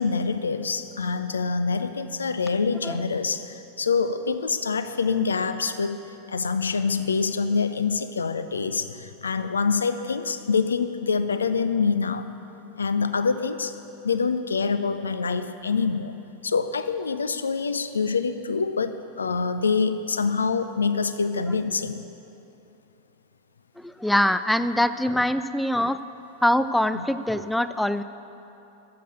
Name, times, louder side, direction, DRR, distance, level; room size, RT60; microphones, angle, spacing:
voice 1, 0.0-6.0 6.3-12.3 12.8-13.7 14.0-16.2 16.4-22.0 26.9-27.0, left 5 dB, 75° left, 11 dB, 0.5 m, -25 dB
voice 2, 23.8-26.0 26.4-28.0, left 1 dB, 5° left, 12 dB, 0.4 m, -23 dB
12.0 x 7.7 x 7.8 m, 2.9 s
figure-of-eight pair, 90°, 0 cm